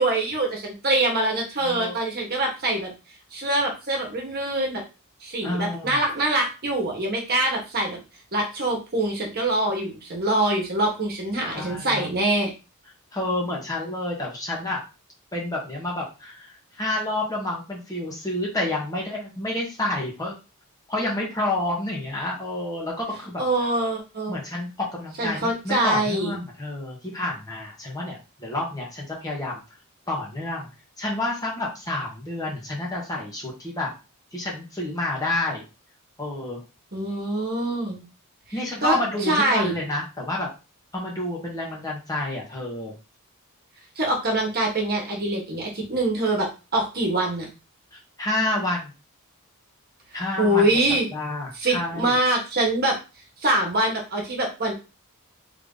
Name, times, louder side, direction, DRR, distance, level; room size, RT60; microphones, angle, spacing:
voice 1, 0.0-2.9 3.3-4.8 5.2-8.0 8.3-12.5 23.4-24.4 25.2-26.4 36.9-38.0 38.8-38.9 39.2-39.7 44.0-47.5 50.4-51.1 51.5-53.0 53.4-54.7, right 1 dB, 45° right, 0 dB, 1.2 m, -24 dB
voice 2, 1.6-2.0 5.4-6.0 11.5-12.1 13.1-14.8 15.3-20.3 20.9-23.4 24.3-29.6 30.1-30.7 31.0-33.9 34.3-35.6 36.2-36.6 38.5-40.5 40.9-42.9 47.9-48.9 50.1-50.7 51.1-52.2, left 1 dB, 15° left, -3 dB, 1.0 m, -29 dB
3.4 x 2.8 x 3.7 m, 0.30 s
head